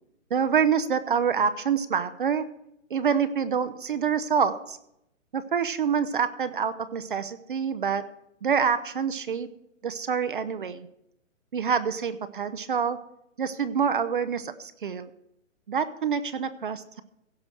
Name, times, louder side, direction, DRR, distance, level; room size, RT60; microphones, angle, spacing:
voice 1, 0.3-2.5 2.9-4.8 5.3-8.0 8.4-9.5 9.8-10.9 11.5-13.0 13.4-15.1 15.7-17.0, right 7 dB, 40° right, 12 dB, 0.6 m, -26 dB
16.0 x 6.0 x 6.4 m, 0.80 s
hypercardioid pair, 160°, 40 cm